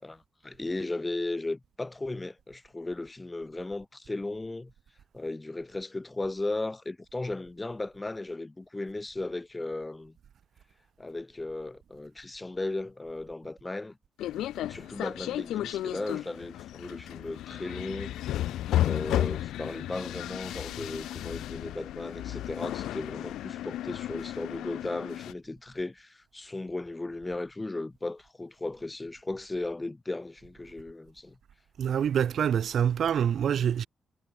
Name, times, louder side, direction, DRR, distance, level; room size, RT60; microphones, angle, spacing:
voice 1, 0.0-4.7 5.1-10.2 11.0-14.0 14.7-18.2 18.8-31.4, left 2 dB, 20° left, 7.9 m, -36 dB
sound 1, 14.2-25.3, left 13 dB, 85° left, 5.8 m, -33 dB
voice 2, 31.8-33.9, right 8 dB, 65° right, 7.4 m, -26 dB
supercardioid pair, 60°, 0 cm